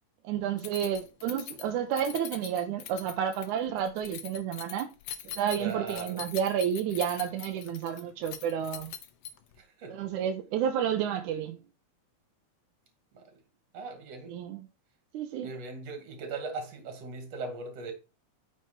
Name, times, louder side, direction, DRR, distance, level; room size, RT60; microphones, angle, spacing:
voice 1, 0.2-4.9 5.4-8.9 9.9-11.6 14.3-14.7 15.1-15.5, right 9 dB, 85° right, 2.3 m, -31 dB
Keys jangling, 0.6-9.6, left 9 dB, 65° left, 1.7 m, -43 dB
voice 2, 5.6-6.3 9.6-10.1 13.1-13.4 13.7-14.4 15.4-17.9, right 4 dB, 60° right, 3.2 m, -39 dB
9.4 x 6.0 x 4.5 m
omnidirectional pair, 3.4 m